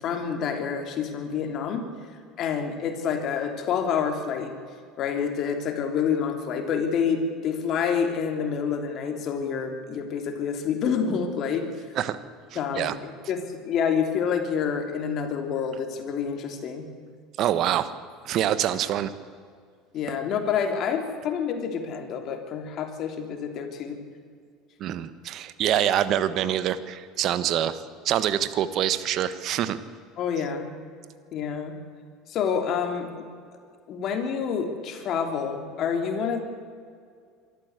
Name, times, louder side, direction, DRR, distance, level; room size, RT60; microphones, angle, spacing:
voice 1, 0.0-1.9 2.4-4.5 5.0-11.7 12.5-16.9 19.9-24.0 30.2-30.7 31.3-31.7 32.3-33.3 33.9-36.4, left 7 dB, 50° left, 5 dB, 3.2 m, -28 dB
voice 2, 12.5-12.9 17.4-17.9 18.2-19.1 24.8-27.8 28.0-29.8, right 11 dB, 55° right, 13 dB, 1.4 m, -25 dB
24.0 x 13.5 x 8.3 m, 2.1 s
supercardioid pair, 100°, 0 cm